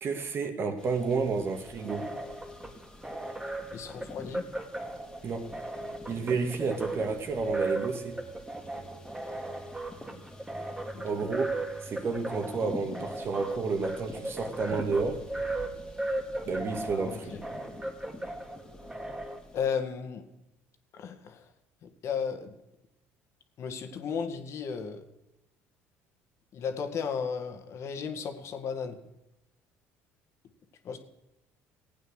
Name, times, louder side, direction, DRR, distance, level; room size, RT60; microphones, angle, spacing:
voice 1, 0.0-2.1 5.2-5.5 6.1-8.2 11.0-11.5 11.8-15.3 16.5-17.3, right 4 dB, 45° right, 2.1 m, -31 dB
sound 1, 0.8-19.7, left 1 dB, 10° left, 2.6 m, -47 dB
sound 2, 1.6-19.4, right 2 dB, 15° right, 2.7 m, -37 dB
voice 2, 3.7-4.5 10.9-11.0 16.9-17.4 19.5-20.2 20.9-21.5 21.8-22.5 23.6-25.0 26.5-29.0 30.8-31.0, left 6 dB, 55° left, 2.0 m, -34 dB
16.0 x 8.9 x 6.4 m
supercardioid pair, 85°, 6 cm